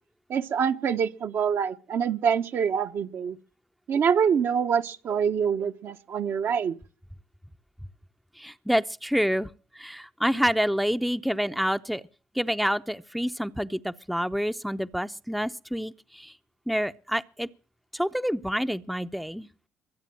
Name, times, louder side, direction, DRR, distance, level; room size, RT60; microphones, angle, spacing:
voice 1, 0.3-3.4 3.9-6.8, right 7 dB, 55° right, 1.0 m, -25 dB
voice 2, 8.4-9.5 9.7-12.0 12.3-16.3 16.7-17.5 17.9-19.5, equal, ahead, 0.7 m, -28 dB
23.0 x 8.3 x 7.6 m
hypercardioid pair, 60°, 5 cm